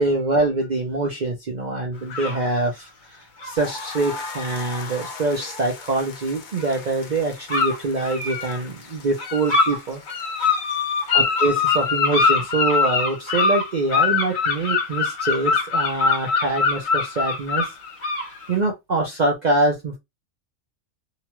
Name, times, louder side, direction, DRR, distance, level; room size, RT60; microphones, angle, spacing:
voice 1, 0.0-10.0 11.1-17.7 18.5-20.0, right 2 dB, 50° right, 0.5 m, -24 dB
sound 1, 2.1-2.5 3.4-3.6 6.6-6.8 7.5-8.6 9.2-9.8 10.1-18.5, left 5 dB, 75° left, 1.3 m, -22 dB
sound 2, 3.6-12.3, left 4 dB, 60° left, 0.5 m, -39 dB
2.8 x 2.2 x 2.9 m
omnidirectional pair, 1.4 m